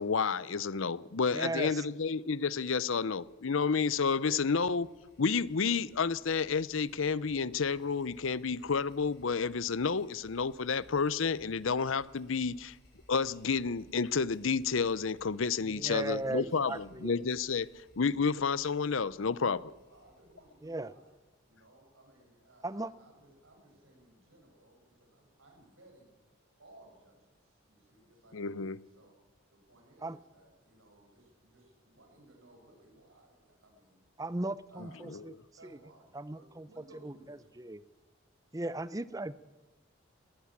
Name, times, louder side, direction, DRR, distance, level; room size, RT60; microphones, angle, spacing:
voice 1, 0.0-4.9 5.2-12.7 13.1-17.7 18.0-19.7 28.3-28.8 35.1-35.2, left 5 dB, 75° left, 0.7 m, -30 dB
voice 2, 1.3-1.8 4.3-4.4 15.6-17.1 20.6-20.9 22.6-22.9 30.0-30.2 34.2-35.3 35.7-35.8 36.1-37.8 38.5-39.4, right 2 dB, 15° right, 0.6 m, -37 dB
sound 1, 2.9-21.4, equal, 50° left, 7.1 m, -64 dB
voice 3, 19.9-21.1 21.5-26.2 26.6-29.2 29.5-34.0 34.7-35.2 35.6-37.5, right 1 dB, 80° right, 7.0 m, -60 dB
20.0 x 18.0 x 7.4 m
head